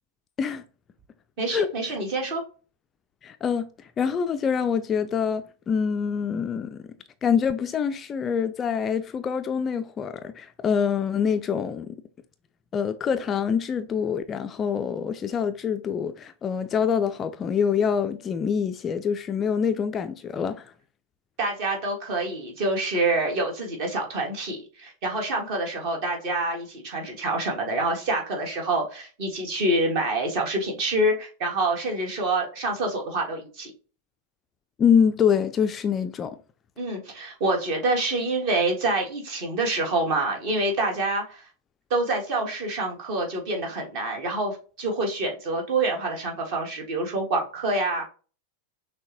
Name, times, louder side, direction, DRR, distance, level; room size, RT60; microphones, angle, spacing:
voice 1, 1.4-2.4 21.4-33.7 36.8-41.4 41.9-48.0, right 2 dB, 45° right, 1.5 m, -26 dB
voice 2, 3.2-3.7 4.0-6.8 7.2-12.0 12.7-20.7 34.8-36.4, left 7 dB, 25° left, 0.3 m, -25 dB
6.2 x 2.2 x 2.8 m
figure-of-eight pair, 90°, 0 cm